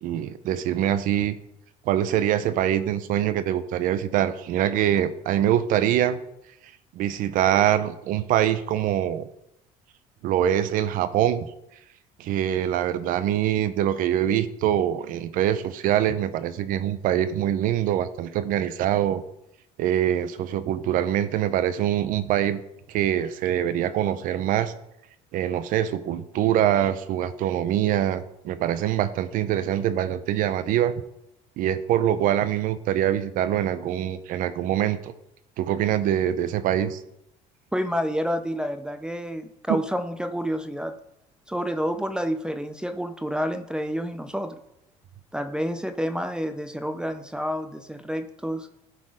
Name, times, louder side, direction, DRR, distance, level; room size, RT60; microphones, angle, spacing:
voice 1, 0.0-1.4 1.9-6.2 6.9-9.3 10.2-11.5 12.2-19.2 19.8-22.6 22.9-24.7 25.3-30.9 31.6-35.1 35.6-37.0 39.7-39.8, right 11 dB, 70° right, 13 dB, 0.6 m, -24 dB
voice 2, 37.7-40.9 41.5-44.6 45.3-48.7, equal, 5° right, 8 dB, 0.5 m, -29 dB
11.5 x 4.2 x 5.0 m, 0.82 s
cardioid pair, 115°, 15 cm